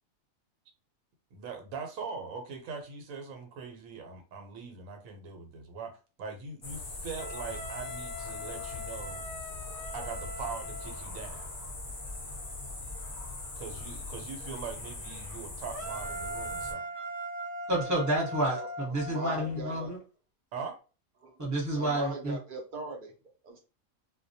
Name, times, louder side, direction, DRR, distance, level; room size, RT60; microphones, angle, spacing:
voice 1, 1.3-9.2 9.9-11.5 13.6-16.9 20.5-20.8, right 5 dB, 80° right, 4 dB, 1.0 m, -41 dB
sound 1, 6.6-16.7, left 2 dB, 50° left, 0.4 m, -41 dB
Wind instrument woodwind instrument, 7.2-11.1, left 2 dB, 65° left, 0.8 m, -43 dB
sound 2, 15.7-19.8, right 1 dB, 15° left, 0.7 m, -39 dB
voice 2, 17.7-20.0 21.4-22.4, right 1 dB, 15° right, -3 dB, 0.8 m, -30 dB
voice 3, 19.0-19.9 21.2-21.3 21.8-23.1 23.4-23.6, right 2 dB, 50° right, 2 dB, 0.6 m, -39 dB
2.2 x 2.1 x 2.6 m, 0.34 s
omnidirectional pair, 1.4 m